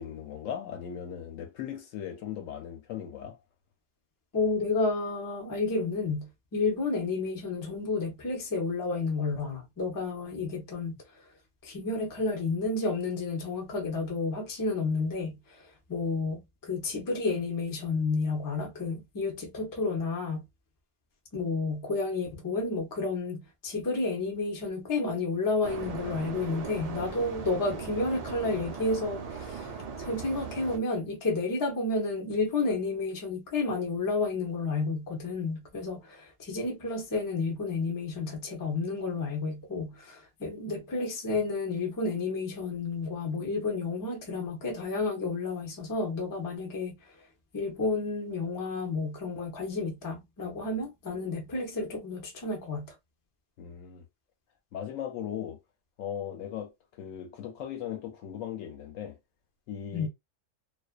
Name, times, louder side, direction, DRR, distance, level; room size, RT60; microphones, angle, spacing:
voice 1, 0.0-3.4 53.6-54.1 54.7-55.6 56.0-56.7 57.0-59.2 59.7-60.1, left 9 dB, 85° left, 1.0 m, -38 dB
voice 2, 4.3-11.0 11.6-15.4 15.9-20.4 21.3-47.0 47.5-52.9 59.9-60.1, left 3 dB, 30° left, 0.4 m, -31 dB
sound 1, 25.6-30.8, right 5 dB, 90° right, 0.3 m, -38 dB
2.4 x 2.2 x 2.3 m
omnidirectional pair, 1.3 m